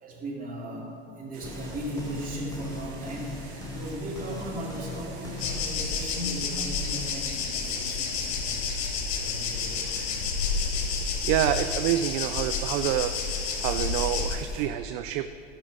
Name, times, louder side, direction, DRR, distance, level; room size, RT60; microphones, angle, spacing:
voice 1, 0.0-10.2, right 1 dB, 25° right, -2 dB, 2.5 m, -37 dB
sound 1, 1.3-14.7, right 2 dB, 80° right, 1.8 m, -45 dB
sound 2, 1.4-5.8, left 2 dB, 10° left, 1.1 m, -40 dB
sound 3, 5.4-14.4, left 5 dB, 55° left, 1.6 m, -30 dB
voice 2, 11.2-13.1 13.6-15.3, right 12 dB, 45° right, 11 dB, 0.4 m, -27 dB
12.5 x 6.1 x 5.4 m, 2.6 s
hypercardioid pair, 95°, 31 cm